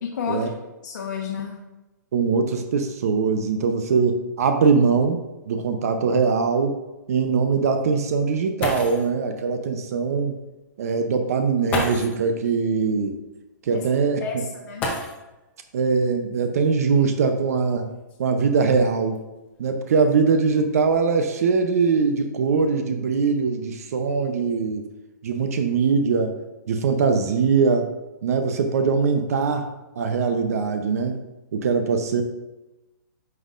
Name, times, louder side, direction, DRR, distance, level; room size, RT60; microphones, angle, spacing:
voice 1, 0.0-0.5 0.8-1.6 13.7-13.8 14.2-14.9, left 6 dB, 70° left, -1 dB, 1.1 m, -31 dB
voice 2, 2.1-5.2 5.5-6.8 7.1-10.4 10.8-13.2 13.6-14.2 15.7-17.9 18.2-19.2 19.6-24.9 25.2-26.3 26.7-27.9 28.2-29.7 30.0-31.2 31.5-32.2, right 5 dB, 50° right, 6 dB, 0.7 m, -22 dB
sound 1, 5.2-5.3 5.9-6.0 8.3-8.4 8.6-9.2 10.4-10.5 11.7-12.3 14.7-15.5 16.9-17.0 17.7-19.2 19.9-20.2 20.6-21.0, left 2 dB, 15° left, 0.7 m, -31 dB
9.2 x 5.4 x 2.5 m, 1.0 s
hypercardioid pair, 170°, 10 cm